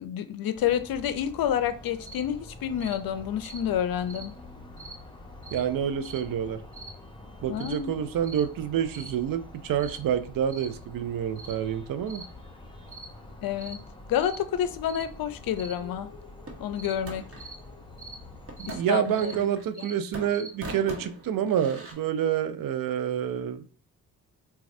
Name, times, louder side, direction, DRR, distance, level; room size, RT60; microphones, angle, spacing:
voice 1, 0.0-4.3 7.5-8.0 13.4-13.8 14.1-16.1 16.6-17.3 18.6-19.4 19.8-19.9, left 9 dB, 65° left, 0.5 m, -29 dB
sound 1, 0.5-18.8, left 2 dB, 10° left, 0.7 m, -46 dB
sound 2, 2.0-2.3 2.8-3.0 3.4-3.6 4.1-4.3 4.8-5.0 5.4-5.6 6.0-6.2 6.7-6.9 7.6-7.8 8.2-8.5 8.9-9.1 9.8-10.0 10.5-10.7 11.4-11.6 12.1-12.3 12.9-13.1 13.6-13.8 14.2-14.4 14.9-15.1 15.6-15.8 16.8-17.0 17.4-17.6 18.0-18.2 18.6-18.8 19.1-19.4 19.7-19.9 20.3-20.5, right 3 dB, 20° right, 1.5 m, -43 dB
voice 2, 5.5-6.6 7.4-12.2 18.6-23.8, right 9 dB, 60° right, 0.5 m, -28 dB
sound 3, 16.5-17.5 18.5-19.8 20.1-21.9, right 2 dB, 35° right, 1.1 m, -42 dB
4.0 x 2.3 x 2.6 m
cardioid pair, 70°, 38 cm